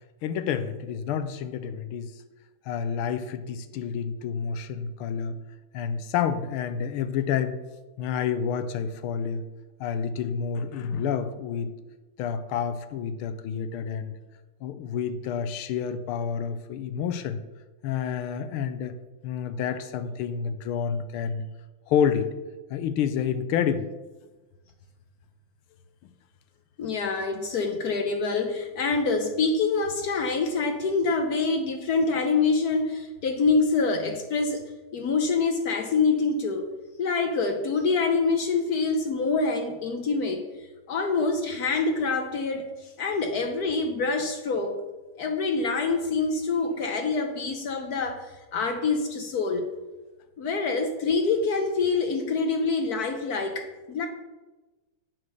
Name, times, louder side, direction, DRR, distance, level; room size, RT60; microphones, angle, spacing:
voice 1, 0.2-2.1 2.7-5.3 5.7-7.6 8.0-9.4 9.8-11.7 12.2-14.1 14.6-17.4 17.8-19.0 19.2-21.5 21.9-22.3 22.7-23.9, left 7 dB, 85° left, 11 dB, 1.5 m, -29 dB
voice 2, 26.8-36.7 37.0-40.4 40.9-44.8 45.2-49.7 50.4-54.1, left 4 dB, 60° left, 5 dB, 1.0 m, -26 dB
7.6 x 6.1 x 6.4 m, 1.2 s
omnidirectional pair, 2.3 m